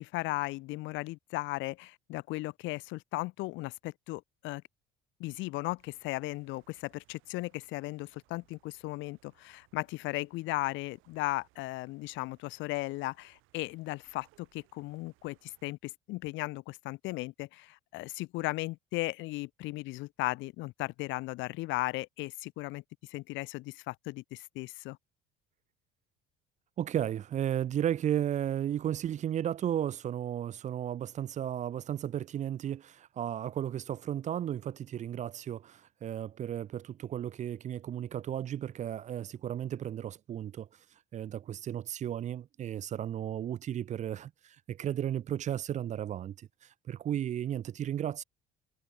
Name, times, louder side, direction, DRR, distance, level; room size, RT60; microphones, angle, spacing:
voice 1, 0.0-4.6 5.2-25.0, left 21 dB, 65° left, 0.4 m, -36 dB
sound 1, 5.8-15.7, right 20 dB, 75° right, 6.5 m, -69 dB
voice 2, 26.8-40.7 41.1-48.2, right 10 dB, 35° right, 0.4 m, -34 dB
supercardioid pair, 90°, 21 cm